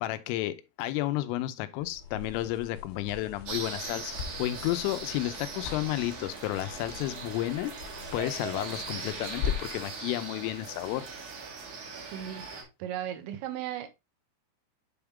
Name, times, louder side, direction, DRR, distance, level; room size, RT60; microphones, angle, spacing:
voice 1, 0.0-7.8 8.1-11.1, left 15 dB, 90° left, 3.3 m, -32 dB
sound 1, 1.8-9.9, left 7 dB, 75° left, 3.3 m, -40 dB
sound 2, 3.4-12.6, right 5 dB, 60° right, 2.0 m, -40 dB
voice 2, 11.9-12.4 12.8-13.9, right 11 dB, 90° right, 3.6 m, -36 dB
8.6 x 3.6 x 3.3 m
omnidirectional pair, 5.7 m